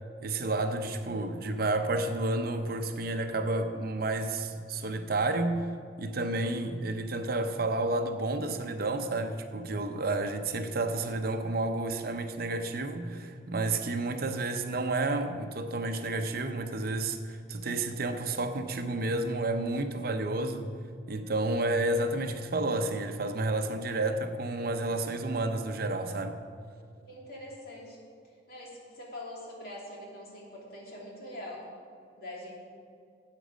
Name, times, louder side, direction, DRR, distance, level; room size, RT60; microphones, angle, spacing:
voice 1, 0.2-5.7 6.0-20.6 21.1-26.4, right 2 dB, 50° right, 7 dB, 0.7 m, -31 dB
voice 2, 27.1-28.1 28.5-31.7 32.2-32.5, left 1 dB, 50° left, -3 dB, 2.7 m, -43 dB
13.0 x 8.3 x 5.1 m, 2.4 s
head